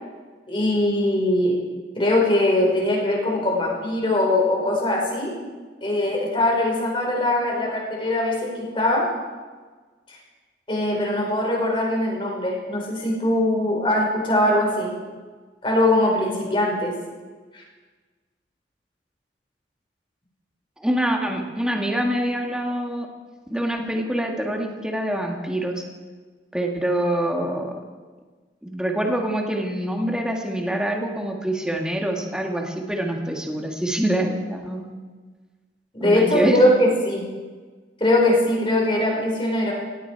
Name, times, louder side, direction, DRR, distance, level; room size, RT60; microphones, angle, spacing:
voice 1, 0.5-1.6 1.9-5.3 5.8-9.1 10.1-10.2 10.7-14.9 15.6-16.9 17.5-17.6 35.9-37.3 38.0-39.7, left 1 dB, 30° left, -2 dB, 5.1 m, -21 dB
voice 2, 20.8-23.1 23.5-25.8 26.5-27.8 28.6-34.9 36.0-36.6, right 1 dB, 5° right, 1 dB, 1.8 m, -25 dB
17.5 x 16.5 x 4.7 m, 1.4 s
head